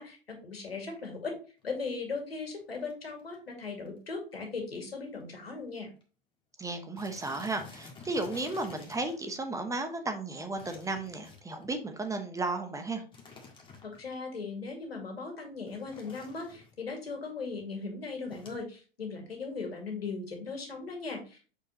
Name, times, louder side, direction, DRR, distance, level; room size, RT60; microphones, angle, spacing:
voice 1, 0.0-1.3 1.6-5.9 13.8-21.5, left 4 dB, 90° left, 2 dB, 2.1 m, -38 dB
sound 1, 1.6-1.9 2.6-2.7 2.9-3.0 3.2-3.5 3.9-4.0 4.3-4.4 5.2-5.3 5.5-5.7 6.0-6.1 7.0-9.2 10.6-11.7 13.1-14.1 15.7-16.7 18.3-18.6, left 4 dB, 15° left, 1.8 m, -51 dB
voice 2, 6.6-13.0, right 2 dB, 10° right, 6 dB, 0.8 m, -34 dB
6.7 x 5.0 x 2.9 m, 0.36 s
hypercardioid pair, 100°, 29 cm